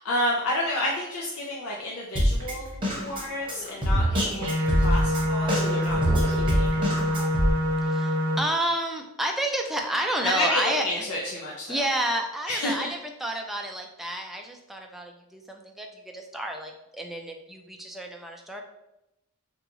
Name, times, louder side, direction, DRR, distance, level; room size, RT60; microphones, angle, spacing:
voice 1, 0.0-4.5 4.7-6.8 10.2-11.9 12.5-12.9, left 1 dB, 70° left, -3 dB, 0.5 m, -30 dB
Drum kit, 2.2-7.5, equal, 25° right, 0.9 m, -25 dB
sound 1, 4.4-8.4, equal, 80° right, 0.6 m, -26 dB
voice 2, 7.8-11.1 11.7-12.9 13.2-15.9 16.1-18.6, right 1 dB, ahead, 2 dB, 0.3 m, -30 dB
2.9 x 2.3 x 3.8 m, 0.89 s
head